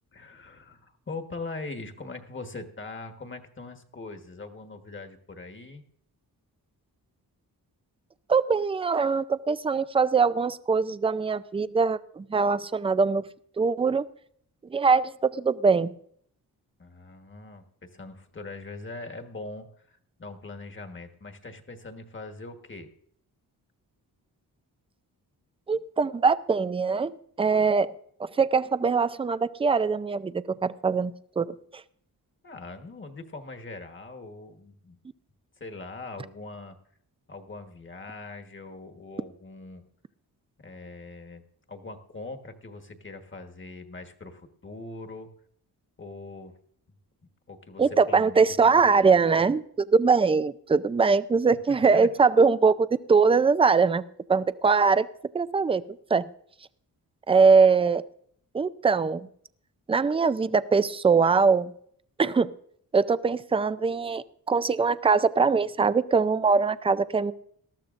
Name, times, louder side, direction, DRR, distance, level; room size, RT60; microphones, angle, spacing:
voice 1, 0.1-5.8 16.8-22.9 32.4-35.0 35.6-36.8 37.3-39.9 40.6-41.4 41.7-45.3 46.0-46.6 47.5-49.5 51.5-52.1, left 3 dB, 30° left, 6 dB, 1.4 m, -42 dB
voice 2, 8.3-13.3 13.6-14.1 14.7-15.9 25.7-27.9 28.2-31.6 47.8-55.1 55.3-55.8 56.1-56.2 57.3-58.0 58.5-59.3 59.9-61.7 62.2-62.5 62.9-67.3, right 5 dB, 15° right, 15 dB, 0.4 m, -22 dB
19.5 x 13.5 x 2.5 m, 0.64 s
wide cardioid pair, 120°, 38 cm